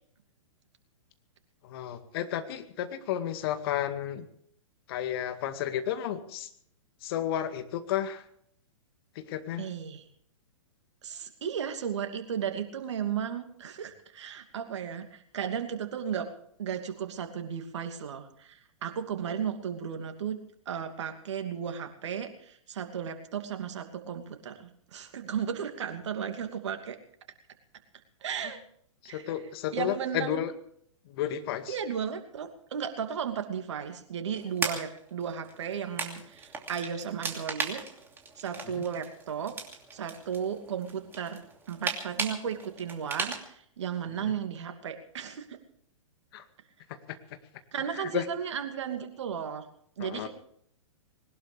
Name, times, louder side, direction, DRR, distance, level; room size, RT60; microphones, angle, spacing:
voice 1, 1.6-4.3 4.9-6.5 7.0-8.2 9.2-9.7 29.1-30.5 31.1-31.7 38.7-38.8 44.2-44.3 46.3-46.4 47.1-47.2 47.9-48.3 50.0-50.3, left 11 dB, 45° left, 8 dB, 2.1 m, -32 dB
voice 2, 9.6-10.0 11.0-16.3 16.6-20.4 20.7-27.0 28.2-28.6 29.0-29.3 29.7-30.4 31.7-37.8 38.4-39.6 39.9-41.4 41.7-45.6 47.7-49.7 50.0-50.3, right 8 dB, 60° right, 6 dB, 2.7 m, -35 dB
sound 1, 34.3-43.4, right 4 dB, 15° right, 2.7 m, -38 dB
21.0 x 19.0 x 3.5 m, 0.65 s
figure-of-eight pair, 115°, 17 cm